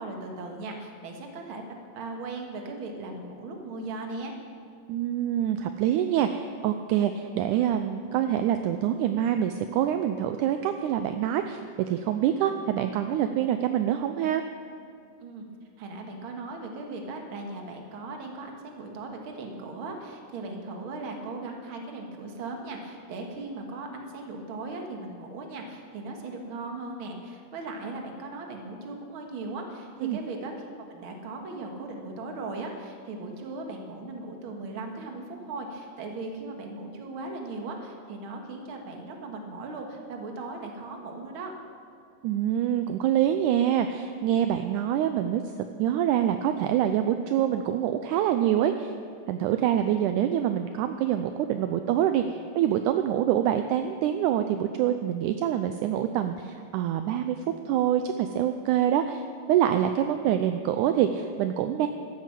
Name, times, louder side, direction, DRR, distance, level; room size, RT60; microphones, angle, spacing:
voice 1, 0.0-1.6 1.9-4.3 15.2-15.5 15.8-41.5 49.5-49.8, right 3 dB, 50° right, 2 dB, 1.9 m, -38 dB
voice 2, 4.9-11.6 11.9-14.4 30.0-30.2 42.2-45.4 45.8-48.9 49.3-52.2 52.6-57.4 57.7-61.9, right 10 dB, 80° right, 8 dB, 1.8 m, -25 dB
13.5 x 10.5 x 7.4 m, 2.3 s
omnidirectional pair, 4.0 m